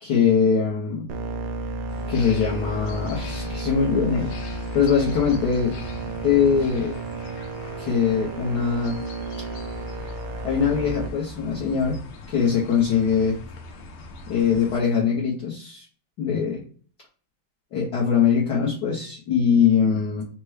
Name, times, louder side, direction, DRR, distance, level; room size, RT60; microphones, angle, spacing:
voice 1, 0.0-1.1 2.1-4.3 4.7-5.7 6.2-6.9 7.8-9.0 10.4-12.0 12.3-13.4 14.3-15.8 16.2-16.6 17.7-20.2, left 6 dB, 60° left, -4 dB, 1.2 m, -22 dB
sound 1, 1.1-11.1, right 2 dB, 80° right, 1.4 m, -32 dB
sound 2, 1.9-14.8, left 2 dB, 85° left, 1.6 m, -41 dB
4.4 x 2.2 x 4.7 m, 0.43 s
omnidirectional pair, 2.3 m